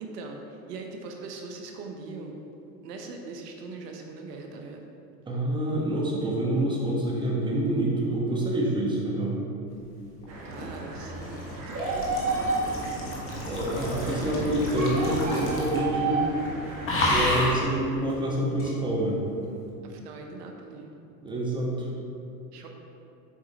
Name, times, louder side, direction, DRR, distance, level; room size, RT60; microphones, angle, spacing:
voice 1, 0.0-2.4 2.8-4.9 10.4-13.2 13.9-14.3 19.8-20.9 22.5-22.7, right 3 dB, 75° right, 2 dB, 0.9 m, -41 dB
voice 2, 5.3-9.4 13.5-16.2 17.0-19.2 21.2-21.9, right 1 dB, 10° right, -3 dB, 1.0 m, -27 dB
sound 1, 10.2-16.0 16.2-16.5 16.8-17.7 18.6-18.7, left 1 dB, 25° left, 1.3 m, -30 dB
sound 2, 10.3-17.5, right 3 dB, 30° right, 1.4 m, -32 dB
7.3 x 4.9 x 2.8 m, 2.7 s
hypercardioid pair, 110°, 49 cm